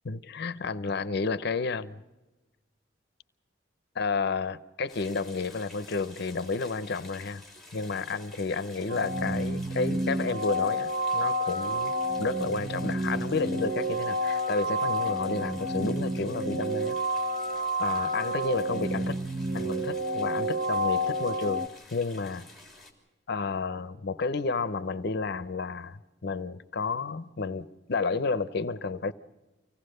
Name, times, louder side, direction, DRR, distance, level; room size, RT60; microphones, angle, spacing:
voice 1, 0.1-2.0 3.9-7.4 7.7-17.0 17.8-19.2 19.5-22.5 23.3-29.1, left 4 dB, 60° left, 0.7 m, -31 dB
sound 1, 4.9-22.9, left 2 dB, ahead, 3.3 m, -51 dB
sound 2, 8.9-21.7, right 1 dB, 40° right, 0.9 m, -30 dB
25.0 x 17.5 x 6.6 m
head